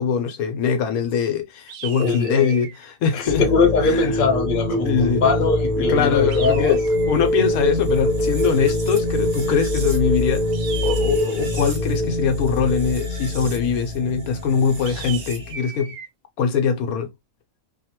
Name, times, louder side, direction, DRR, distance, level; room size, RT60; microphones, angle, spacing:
voice 1, 0.0-3.4 3.8-4.1 4.8-5.2 5.8-6.8 7.1-10.5 10.8-16.0 16.4-17.1, left 6 dB, 80° left, 1.1 m, -22 dB
sound 1, 1.7-2.8 6.3-7.3 10.5-11.8 14.8-16.1, right 7 dB, 85° right, 1.1 m, -37 dB
voice 2, 2.0-2.6 3.1-6.8 8.4-8.5, left 4 dB, 40° left, 0.9 m, -21 dB
sound 2, 3.2-15.5, left 1 dB, 30° right, 1.0 m, -24 dB
2.7 x 2.5 x 2.8 m
omnidirectional pair, 1.5 m